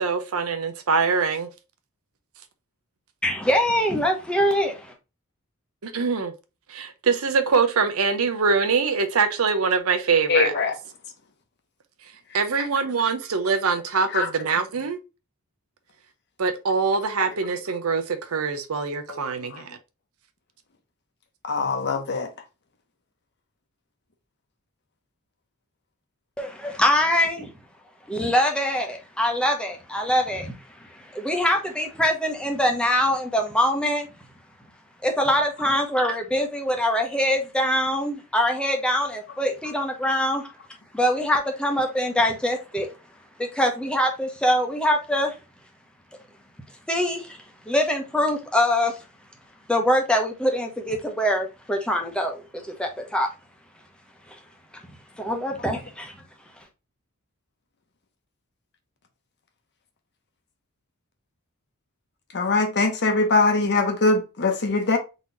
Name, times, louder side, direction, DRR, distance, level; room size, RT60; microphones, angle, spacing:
voice 1, 0.0-1.5 5.8-6.3 6.7-10.5 12.3-15.0 16.4-19.8, right 5 dB, 70° right, 0.7 m, -23 dB
voice 2, 3.2-4.9 26.4-27.5 28.1-34.1 35.0-40.5 40.9-42.9 43.4-45.4 46.9-47.4 47.7-49.0 49.7-53.3 54.3-54.4 55.1-56.2, equal, 5° left, 0.9 m, -23 dB
voice 3, 10.3-10.7 14.1-14.3 19.1-19.2 19.5-19.6 21.4-22.3 62.3-65.0, left 3 dB, 50° left, 0.9 m, -22 dB
4.0 x 3.0 x 3.9 m
head